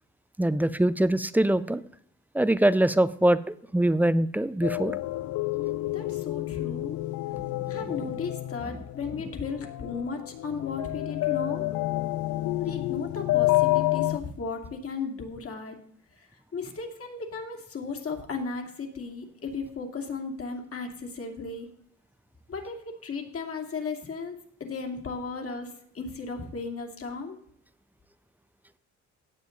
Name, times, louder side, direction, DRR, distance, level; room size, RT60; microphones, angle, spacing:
voice 1, 0.4-1.8 2.3-5.0 7.8-8.1 8.7-8.8, right 1 dB, 5° right, 15 dB, 0.6 m, -24 dB
sound 1, 4.6-14.2, left 18 dB, 75° left, 0.5 m, -29 dB
voice 2, 5.9-7.0 7.7-11.7 12.6-15.8 16.5-21.7 22.5-25.7 25.9-27.4, left 4 dB, 50° left, 2 dB, 2.7 m, -35 dB
16.5 x 7.5 x 3.9 m, 0.66 s
cardioid pair, 90°, 30 cm